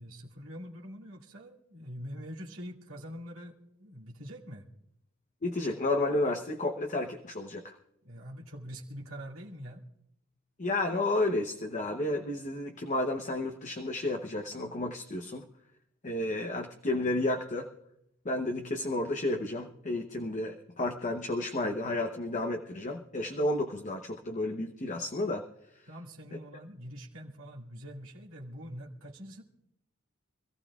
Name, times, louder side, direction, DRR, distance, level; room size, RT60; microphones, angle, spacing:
voice 1, 0.0-4.7 8.0-9.8 25.9-29.4, equal, 80° right, -1 dB, 2.2 m, -44 dB
voice 2, 5.4-7.8 10.6-15.4 16.0-17.7 18.2-25.4, left 2 dB, 35° left, 3 dB, 0.9 m, -31 dB
26.0 x 15.0 x 2.4 m, 0.79 s
head